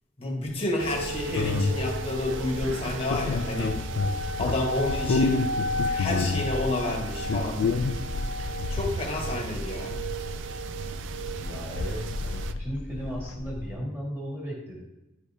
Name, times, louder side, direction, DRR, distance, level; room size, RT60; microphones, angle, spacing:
voice 1, 0.2-3.8 4.4-5.5 5.9-7.7 8.7-10.0, left 2 dB, 30° left, 0 dB, 1.2 m, -30 dB
sound 1, 0.8-12.5, right 1 dB, 65° right, 0.3 m, -34 dB
sound 2, 0.9-13.8, left 3 dB, 80° left, 0.4 m, -30 dB
voice 2, 11.4-14.8, equal, 10° right, -4 dB, 1.9 m, -36 dB
10.0 x 4.9 x 2.7 m, 0.96 s
head